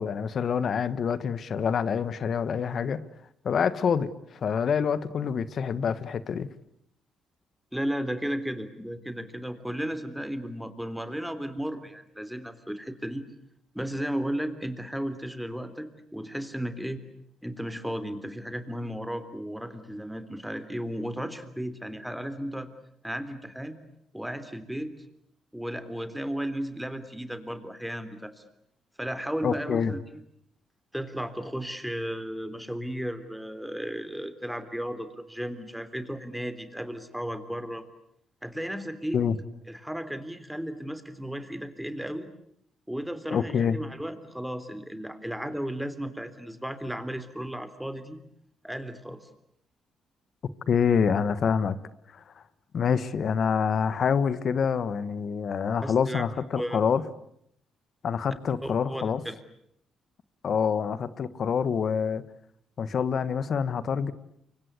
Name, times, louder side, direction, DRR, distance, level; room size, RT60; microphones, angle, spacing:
voice 1, 0.0-3.0 3.4-6.5 29.4-29.9 39.1-39.3 43.3-43.8 50.7-51.7 52.1-52.2 52.7-57.0 58.0-59.2 60.4-62.2 62.8-64.1, left 6 dB, 55° left, 15 dB, 1.5 m, -26 dB
voice 2, 7.7-13.2 13.7-17.0 17.4-22.7 23.0-23.8 24.1-25.0 25.5-28.4 29.0-30.2 30.9-37.8 38.4-39.2 39.7-42.3 42.9-48.2 48.6-49.3 55.8-56.3 56.6-56.8 58.6-59.3, equal, 5° right, 11 dB, 3.3 m, -34 dB
29.0 x 24.5 x 8.3 m, 0.72 s
cardioid pair, 90°, 0 cm